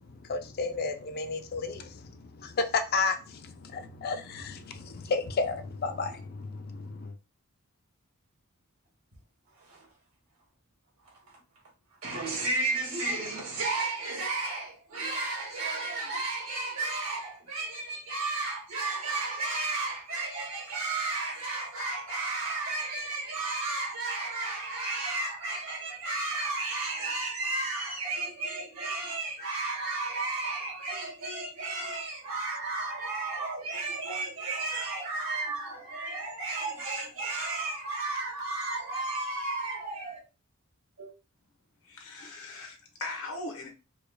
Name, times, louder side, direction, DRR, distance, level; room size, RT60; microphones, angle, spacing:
voice 1, 0.0-7.1, left 4 dB, 45° left, 0.5 m, -32 dB
voice 2, 9.6-9.9 11.0-11.4 12.0-40.2 41.0-41.1, right 3 dB, 70° right, 1.9 m, -33 dB
voice 3, 41.8-43.7, left 2 dB, 80° left, 1.1 m, -39 dB
4.7 x 2.3 x 2.2 m
head